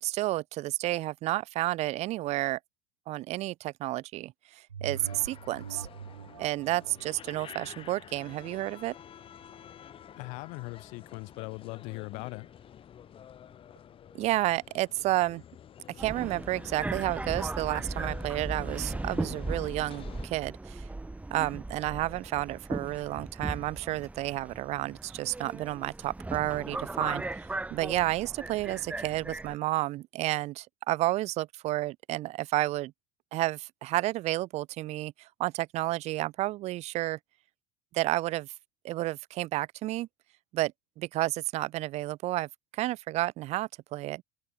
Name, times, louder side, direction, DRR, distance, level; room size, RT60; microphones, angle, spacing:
voice 1, 0.0-2.6 3.1-5.9 6.4-9.0 14.1-15.4 16.0-20.9 21.3-27.2 27.7-32.9 33.3-37.2 37.9-38.5 38.8-40.1 40.5-44.2, right 17 dB, 50° right, 1.0 m, -31 dB
sound 1, 4.7-9.6 10.1-10.2, right 7 dB, 90° right, 2.3 m, -45 dB
sound 2, 4.9-20.3, left 9 dB, 40° left, 6.7 m, -49 dB
voice 2, 10.2-12.5, left 29 dB, 60° left, 3.7 m, -40 dB
Subway metro underground, 16.0-29.6, right 2 dB, 10° right, 2.4 m, -37 dB
open air
hypercardioid pair, 80°, 14 cm